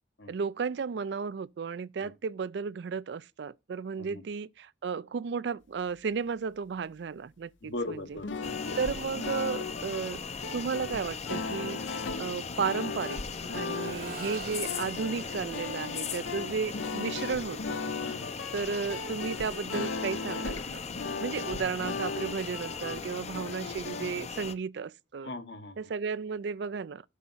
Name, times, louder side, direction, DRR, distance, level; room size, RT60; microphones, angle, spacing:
voice 1, 0.3-8.2 8.8-10.2 10.5-13.2 13.5-17.8 18.5-20.8 21.2-25.3 25.8-27.0, right 5 dB, 65° right, 0.4 m, -34 dB
voice 2, 7.6-8.8 13.7-13.9 18.0-18.3 21.3-21.7 25.2-25.8, left 2 dB, 70° left, 1.2 m, -40 dB
sound 1, 8.1-24.1, left 4 dB, 90° left, 0.8 m, -38 dB
sound 2, 8.4-24.6, left 5 dB, 35° left, 0.6 m, -39 dB
Accelerating revving vroom, 11.8-20.9 22.6-22.7, right 3 dB, 50° right, 1.1 m, -49 dB
8.4 x 5.2 x 5.6 m
head